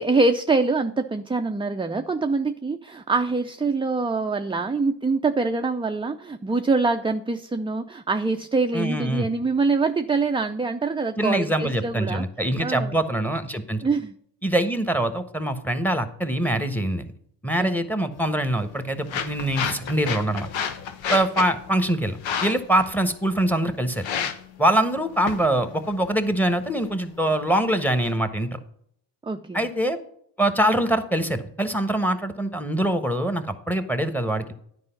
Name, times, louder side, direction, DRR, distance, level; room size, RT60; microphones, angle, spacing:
voice 1, 0.0-12.2 12.6-12.9 13.8-14.1 17.6-17.7 29.2-29.7, right 3 dB, 10° right, 6 dB, 0.4 m, -24 dB
voice 2, 8.7-9.3 11.2-13.8 14.4-17.1 17.4-20.5 21.1-24.1 24.6-28.6 29.5-30.0 30.4-34.5, right 1 dB, 5° left, 9 dB, 1.2 m, -24 dB
sound 1, 18.1-28.1, left 7 dB, 80° left, 0.9 m, -33 dB
9.5 x 4.9 x 5.8 m, 0.68 s
supercardioid pair, 50°, 45 cm